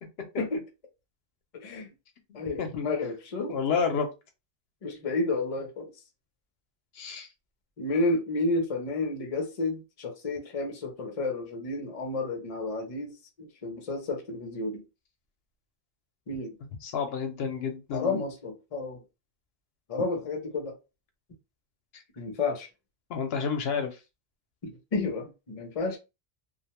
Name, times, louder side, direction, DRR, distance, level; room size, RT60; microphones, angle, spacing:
voice 1, 1.5-1.9 2.3-3.6 4.8-5.9 7.8-14.8 16.3-16.5 17.9-19.0 19.9-20.8 22.1-22.7 24.6-26.0, left 2 dB, 40° left, 0.7 m, -31 dB
voice 2, 3.5-4.1 6.9-7.3 16.8-18.2 23.1-24.0, left 6 dB, 80° left, 0.8 m, -30 dB
2.4 x 2.1 x 2.9 m
omnidirectional pair, 1.0 m